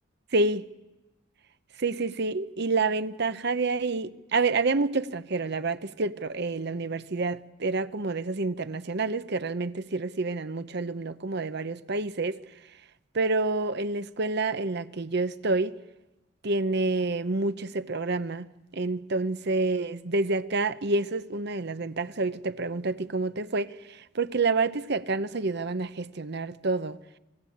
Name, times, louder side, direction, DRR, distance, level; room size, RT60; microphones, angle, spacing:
voice 1, 0.3-0.6 1.8-12.4 13.1-15.7 16.4-18.5 18.7-27.0, right 3 dB, 55° right, 0.8 m, -28 dB
26.0 x 18.5 x 8.7 m
head